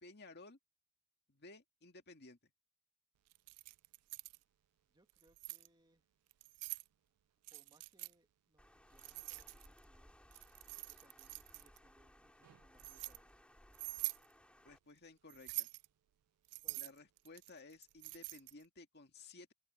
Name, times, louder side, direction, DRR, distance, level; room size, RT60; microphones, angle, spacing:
voice 1, 0.0-0.6 1.3-2.4 14.6-15.7 16.7-19.5, left 3 dB, 50° left, 2.1 m, -57 dB
Keys jangling, 3.3-4.4 5.1-5.7 6.3-6.9 7.4-8.1 9.0-9.8 10.3-11.8 12.4-13.2 13.7-14.2 15.3-15.9 16.5-18.6, right 24 dB, 90° right, 0.3 m, -45 dB
voice 2, 4.8-6.0 7.5-10.2 10.9-13.4 16.6-16.9, right 1 dB, 20° right, 2.0 m, -72 dB
Water, 8.6-14.8, equal, 5° left, 2.9 m, -63 dB
head